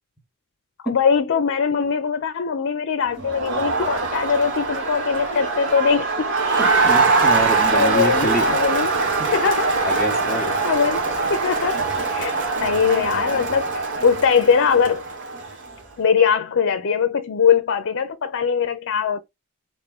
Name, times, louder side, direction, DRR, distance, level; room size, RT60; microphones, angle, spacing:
voice 1, 0.8-6.3 7.7-8.9 9.3-9.7 10.6-11.8 12.1-12.3 12.6-15.0 16.0-19.2, left 6 dB, 55° left, 0.5 m, -21 dB
Crowd, 3.2-15.7, right 4 dB, 55° right, 1.8 m, -22 dB
voice 2, 6.6-8.6 9.8-10.5, right 1 dB, ahead, 1.0 m, -27 dB
3.6 x 3.6 x 3.5 m
head